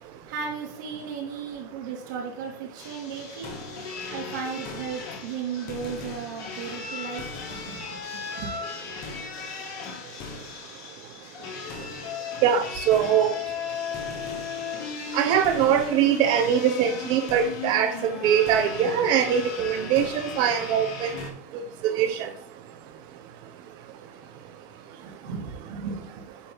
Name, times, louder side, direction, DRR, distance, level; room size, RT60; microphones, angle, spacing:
voice 1, 0.2-3.5 4.1-8.6 25.0-26.2, right 6 dB, 75° right, -2 dB, 2.7 m, -35 dB
sound 1, 2.8-21.3, left 5 dB, 45° left, 1.9 m, -36 dB
voice 2, 12.4-13.3 15.1-21.1 21.5-22.3, right 9 dB, 50° right, 7 dB, 1.2 m, -22 dB
8.5 x 3.2 x 4.7 m, 0.64 s
supercardioid pair, 130°, 10 cm